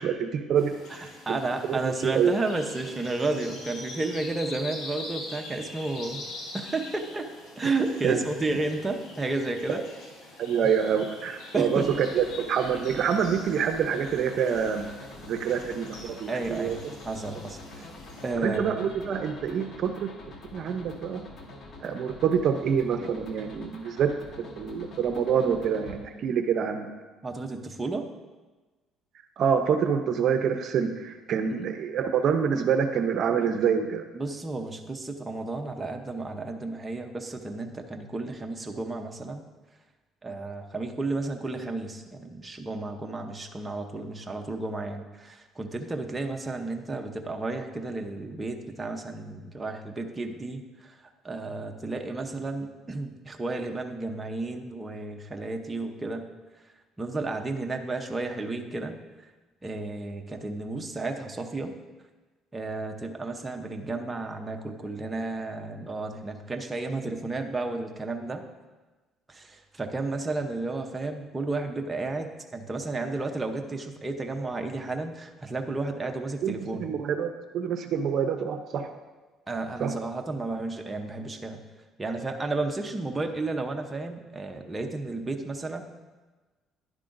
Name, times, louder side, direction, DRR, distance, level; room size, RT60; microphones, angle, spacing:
voice 1, 0.0-1.4 1.7-2.3 8.0-8.2 9.7-9.8 10.4-14.9 15.2-16.8 18.4-20.1 20.5-21.2 21.8-24.1 24.4-26.9 29.4-34.0 76.4-78.9 79.8-79.9, right 7 dB, 55° right, 7 dB, 0.6 m, -26 dB
sound 1, 0.6-18.3, left 2 dB, 80° left, 2.2 m, -44 dB
voice 2, 0.9-6.2 6.5-7.3 7.6-9.8 11.5-11.9 16.3-17.9 18.2-18.6 27.2-28.1 31.5-31.6 34.1-39.4 40.2-51.0 51.2-56.3 57.0-59.0 59.6-61.7 62.5-68.4 69.3-76.9 79.5-81.6 82.0-85.8, right 2 dB, 20° right, 3 dB, 0.8 m, -32 dB
sound 2, 11.8-25.9, left 2 dB, 50° left, 1.3 m, -46 dB
11.0 x 9.8 x 2.6 m, 1.2 s
cardioid pair, 105°, 0 cm